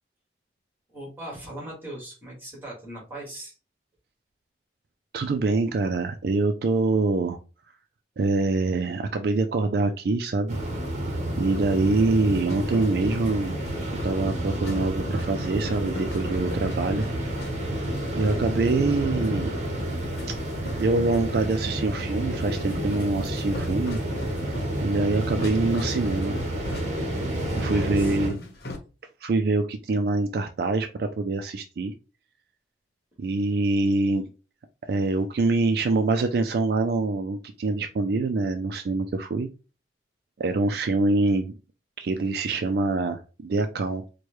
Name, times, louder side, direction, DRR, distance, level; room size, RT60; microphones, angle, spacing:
voice 1, 0.9-3.5 27.3-28.5, right 1 dB, 10° right, -3 dB, 1.8 m, -40 dB
voice 2, 5.1-7.4 8.2-10.6 11.4-13.6 14.0-17.1 18.1-19.5 20.7-24.0 24.8-26.4 27.5-28.4 29.2-31.9 33.2-34.3 34.9-39.5 40.4-41.5 42.0-44.0, right 3 dB, 60° right, 7 dB, 0.4 m, -25 dB
sound 1, 10.5-28.3, right 1 dB, 40° right, 0.9 m, -30 dB
sound 2, 11.3-28.8, left 1 dB, 60° left, 0.9 m, -41 dB
4.6 x 2.2 x 3.0 m, 0.33 s
head